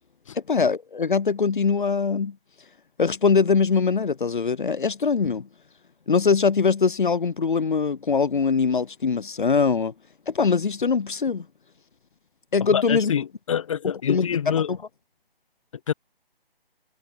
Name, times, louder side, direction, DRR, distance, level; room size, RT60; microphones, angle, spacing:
voice 1, 0.3-2.3 3.0-5.5 6.1-9.9 10.3-11.5 12.5-13.1 14.1-14.3 14.5-14.8, left 5 dB, 55° left, 1.1 m, -22 dB
voice 2, 12.6-14.7 15.9-16.0, left 8 dB, 35° left, 2.2 m, -26 dB
figure-of-eight pair, 150°, 30 cm